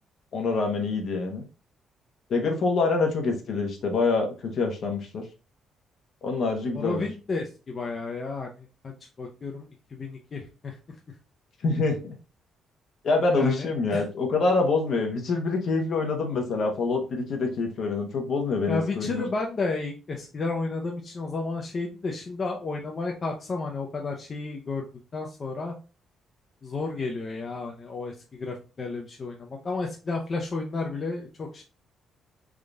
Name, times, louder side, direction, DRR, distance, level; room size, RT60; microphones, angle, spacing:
voice 1, 0.3-1.4 2.3-5.2 6.2-7.1 11.6-12.1 13.0-19.2, left 3 dB, 60° left, 3 dB, 1.0 m, -26 dB
voice 2, 6.8-8.5 8.8-8.9 9.2-9.7 10.0-10.7 13.3-14.0 18.7-24.8 25.1-25.7 26.6-31.6, left 3 dB, 40° left, 1 dB, 0.6 m, -32 dB
3.6 x 2.5 x 3.3 m, 0.34 s
cardioid pair, 90°, 0 cm